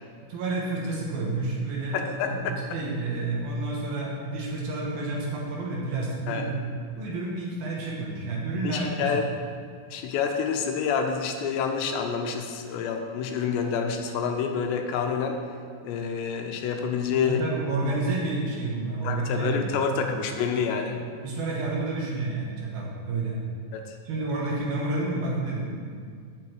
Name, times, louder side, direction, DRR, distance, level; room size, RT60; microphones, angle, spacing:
voice 1, 0.3-6.6 6.9-9.2 17.2-20.0 20.7-20.8 21.2-23.4 24.0-26.0, right 2 dB, 70° right, -3 dB, 2.6 m, -30 dB
voice 2, 1.9-2.6 6.3-6.5 8.6-9.2 9.9-15.4 15.8-17.4 19.0-21.0 23.7-24.0, left 6 dB, 90° left, 4 dB, 3.0 m, -28 dB
15.0 x 6.8 x 3.2 m, 2.1 s
omnidirectional pair, 5.0 m